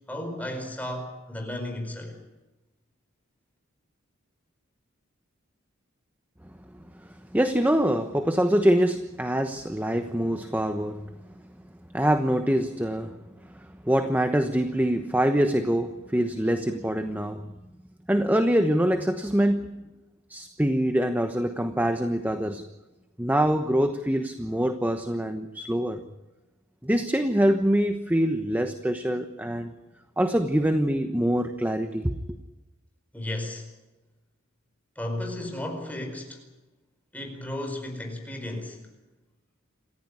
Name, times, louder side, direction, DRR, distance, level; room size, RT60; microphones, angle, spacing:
voice 1, 0.1-2.2 33.1-33.7 35.0-36.4 37.1-38.8, left 1 dB, 5° left, 3 dB, 4.8 m, -34 dB
voice 2, 7.3-11.1 11.9-13.2 13.5-17.5 18.1-19.8 20.3-22.6 23.2-26.0 26.8-29.7 30.2-32.1, equal, 10° right, 8 dB, 1.1 m, -24 dB
27.5 x 15.5 x 9.7 m, 1.1 s
head